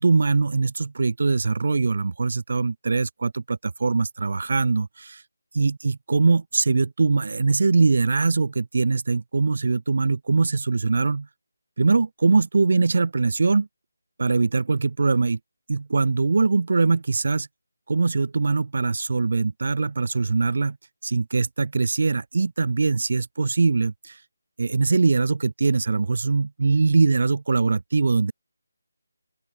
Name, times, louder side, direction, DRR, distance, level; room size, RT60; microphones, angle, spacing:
voice 1, 0.0-5.2 5.5-11.3 11.8-13.7 14.2-15.4 15.7-17.5 17.9-20.8 21.0-24.2 24.6-28.3, right 4 dB, 50° right, 0.4 m, -22 dB
open air
figure-of-eight pair, 155°, 0 cm